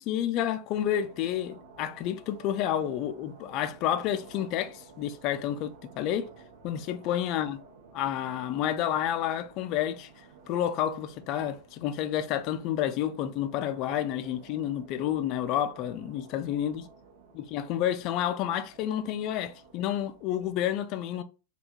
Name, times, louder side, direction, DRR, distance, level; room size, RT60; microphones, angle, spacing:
voice 1, 0.1-6.3 6.6-7.6 7.9-10.1 10.5-16.9 17.3-21.2, left 10 dB, 40° left, 0.3 m, -30 dB
sound 1, 0.7-20.6, right 4 dB, 70° right, 0.7 m, -54 dB
3.4 x 2.2 x 2.7 m
figure-of-eight pair, 90°, 0 cm